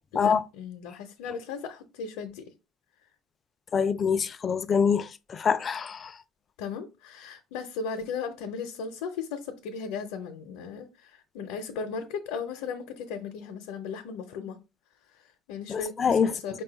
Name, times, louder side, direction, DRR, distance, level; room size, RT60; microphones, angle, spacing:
voice 1, 0.1-2.5 6.6-14.6 15.1-16.6, left 5 dB, 85° left, 0.6 m, -36 dB
voice 2, 3.7-5.1 5.4-6.1 15.7-16.3, left 6 dB, 30° left, 0.3 m, -24 dB
4.8 x 2.3 x 3.9 m
cardioid pair, 130°, 0 cm